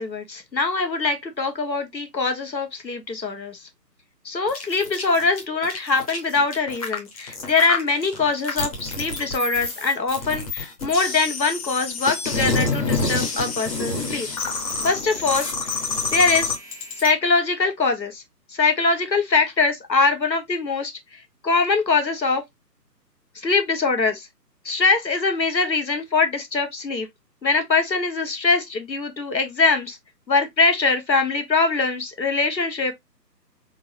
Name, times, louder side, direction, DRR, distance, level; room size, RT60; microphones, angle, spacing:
voice 1, 0.0-3.6 4.2-14.3 14.8-15.5 16.1-16.5 17.0-18.2 18.5-20.9 21.4-22.4 23.4-24.3 24.6-27.1 27.4-30.0 30.3-32.9, left 4 dB, 85° left, 1.4 m, -22 dB
sound 1, 4.5-17.1, left 3 dB, 20° left, 0.9 m, -28 dB
4.3 x 3.7 x 2.6 m
figure-of-eight pair, 145°, 50 cm